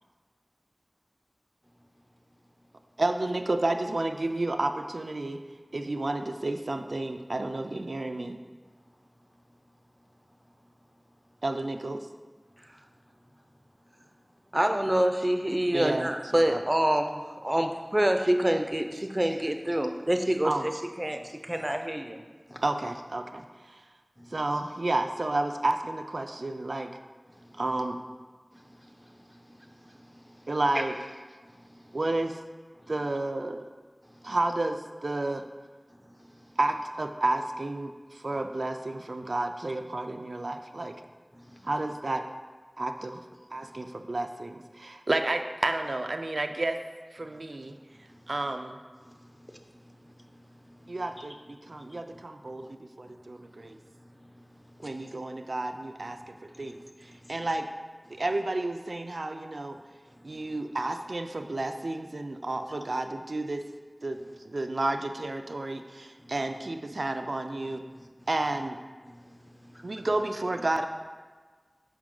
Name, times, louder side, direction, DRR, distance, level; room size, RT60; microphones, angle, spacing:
voice 1, 3.0-5.4 5.7-8.4 11.4-12.1 15.7-16.1 16.5-16.6 20.4-20.7 22.6-23.8 24.3-26.9 27.6-28.0 30.5-30.9 31.9-32.4 32.9-33.6 34.2-35.4 36.6-41.0 41.6-42.2 42.8-43.2 43.5-46.8 47.1-47.8 48.3-48.8 50.9-53.8 54.8-57.7 58.2-59.8 60.2-63.6 64.0-67.8 68.3-68.8 69.8-70.9, right 2 dB, 90° right, 7 dB, 0.3 m, -31 dB
voice 2, 14.5-22.2, right 1 dB, 25° right, 6 dB, 0.5 m, -26 dB
voice 3, 27.3-27.6 28.5-30.5 30.7-30.8 31.4-32.0 32.8-32.9 34.1-34.4 36.1-36.5 41.3-41.7 43.6-43.8 48.1-48.3 49.0-51.3 51.6-52.0 52.4-52.7 53.0-53.7 53.9-55.1 56.5-57.3 58.1-58.2 60.1-60.4 66.2-66.3 68.0-68.1 69.0-70.1, equal, 10° left, 2 dB, 0.7 m, -48 dB
6.0 x 5.1 x 3.7 m, 1.4 s
wide cardioid pair, 50°, 0 cm